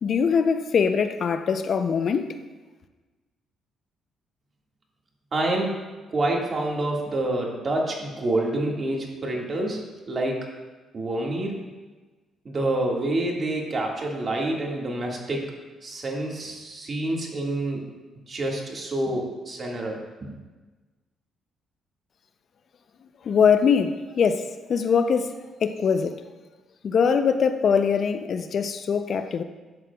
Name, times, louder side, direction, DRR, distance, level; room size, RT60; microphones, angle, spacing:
voice 1, 0.0-2.3 23.2-25.3 25.6-26.2 26.8-29.4, left 6 dB, 55° left, 0.5 m, -22 dB
voice 2, 5.3-5.8 6.1-10.5 10.9-11.5 12.5-15.5 15.8-17.9 18.3-20.3, right 1 dB, 40° right, 1.8 m, -27 dB
11.0 x 7.6 x 2.3 m
cardioid pair, 90°, 0 cm